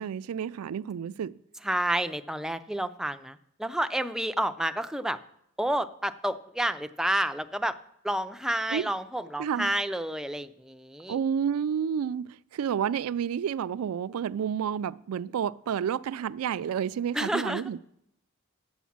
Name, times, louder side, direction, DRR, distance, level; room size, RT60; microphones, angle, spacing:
voice 1, 0.0-1.4 8.7-8.8 9.4-9.7 11.1-17.8, right 8 dB, 85° right, 0.3 m, -30 dB
voice 2, 1.6-5.2 5.6-7.8 8.0-11.2 17.1-17.8, right 1 dB, 5° right, 0.3 m, -30 dB
9.2 x 7.1 x 7.2 m
head